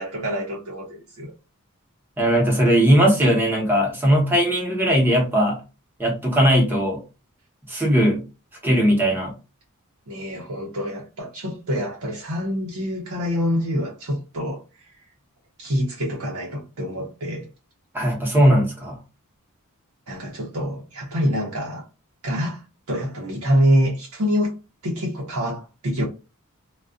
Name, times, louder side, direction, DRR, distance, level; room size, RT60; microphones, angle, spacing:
voice 1, 0.0-1.3 10.1-14.9 15.6-17.5 20.1-21.8 22.2-24.5 24.8-26.0, equal, 75° right, 0.8 m, -26 dB
voice 2, 2.2-5.6 6.0-7.0 7.7-8.2 8.6-9.3 17.9-19.0, equal, 10° right, 0.9 m, -18 dB
2.3 x 2.2 x 2.4 m
head